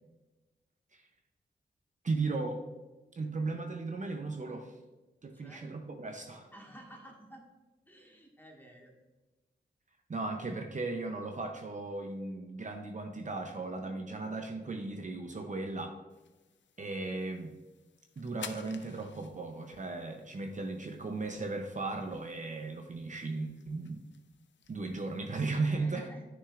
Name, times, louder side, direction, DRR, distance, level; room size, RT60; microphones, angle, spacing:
voice 1, 2.0-2.6 3.2-4.7 5.2-6.5 10.1-16.0 16.8-17.5 18.2-24.1 24.7-26.1, right 3 dB, 45° right, 4 dB, 0.7 m, -36 dB
voice 2, 5.3-5.7 6.5-7.4 7.8-8.9 25.7-26.3, right 1 dB, 10° left, -1 dB, 1.7 m, -51 dB
sound 1, 16.1-25.6, left 7 dB, 85° left, 0.5 m, -54 dB
9.8 x 6.2 x 2.5 m, 1.2 s
wide cardioid pair, 100°, 18 cm